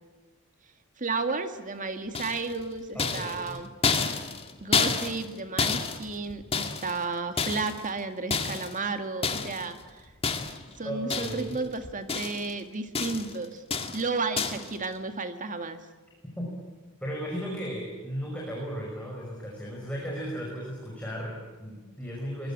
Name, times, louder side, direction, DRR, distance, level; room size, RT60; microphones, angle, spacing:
voice 1, 1.0-3.7 4.6-10.1 10.8-13.6 13.9-15.8, right 3 dB, 35° right, 8 dB, 2.0 m, -33 dB
sound 1, 2.1-2.6 3.0-5.3 5.6-7.0 7.4-7.9 8.3-8.8 9.2-9.7 10.2-10.7 11.1-11.6 11.8-12.5 12.9-13.4 13.7-14.1 14.4-14.7, left 5 dB, 25° left, 1.9 m, -29 dB
voice 2, 2.9-3.6 10.8-11.5 16.4-16.5 17.0-22.5, equal, 5° left, -3 dB, 5.8 m, -35 dB
23.0 x 22.0 x 8.9 m, 1.3 s
head